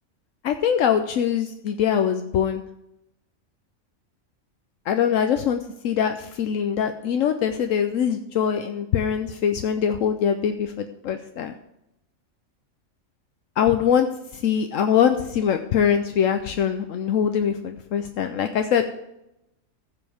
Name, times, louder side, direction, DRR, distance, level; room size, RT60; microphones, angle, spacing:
voice 1, 0.4-2.6 4.9-11.5 13.6-14.1 14.3-18.9, left 8 dB, 75° left, 7 dB, 1.1 m, -23 dB
15.5 x 7.3 x 3.5 m, 0.86 s
omnidirectional pair, 1.4 m